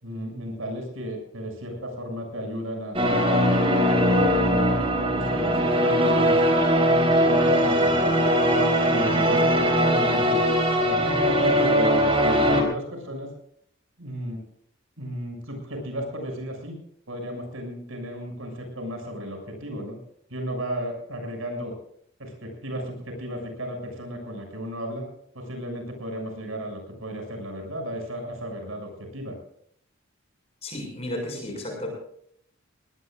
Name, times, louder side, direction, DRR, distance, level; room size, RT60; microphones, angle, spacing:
voice 1, 0.0-3.4 3.8-6.4 7.0-10.4 10.8-13.3 14.0-14.4 15.0-16.8 17.1-20.0 20.3-21.7 22.2-25.0 25.3-29.3, equal, 90° right, 3 dB, 6.8 m, -34 dB
sound 1, 2.9-12.6, equal, 25° right, 3.8 m, -20 dB
voice 2, 30.6-31.9, left 1 dB, 30° left, 1 dB, 6.4 m, -33 dB
21.0 x 20.0 x 2.5 m, 0.67 s
head